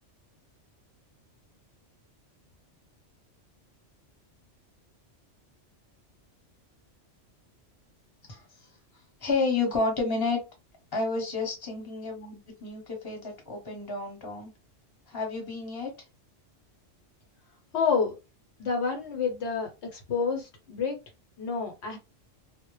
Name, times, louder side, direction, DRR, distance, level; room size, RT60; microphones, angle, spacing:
voice 1, 9.2-10.4 10.9-14.5 15.1-15.9, left 3 dB, 20° left, 0.8 m, -30 dB
voice 2, 17.7-18.2 18.6-21.0 21.4-22.0, left 5 dB, 70° left, 0.8 m, -29 dB
2.0 x 2.0 x 3.0 m
omnidirectional pair, 1.2 m